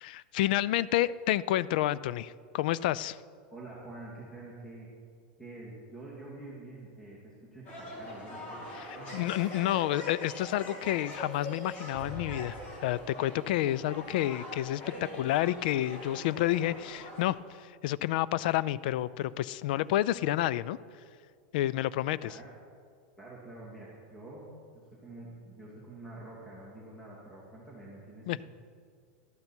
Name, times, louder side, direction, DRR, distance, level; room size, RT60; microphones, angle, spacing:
voice 1, 0.0-3.2 8.7-20.8 21.5-22.4 28.3-28.4, left 14 dB, 65° left, 19 dB, 0.4 m, -30 dB
voice 2, 3.5-4.9 5.4-8.6 9.0-9.2 22.2-22.5 23.2-28.5, right 2 dB, 10° left, -6 dB, 2.5 m, -47 dB
sound 1, 7.6-17.3, left 1 dB, 35° left, 3.0 m, -43 dB
13.0 x 12.0 x 4.4 m, 2.1 s
supercardioid pair, 145°, 5 cm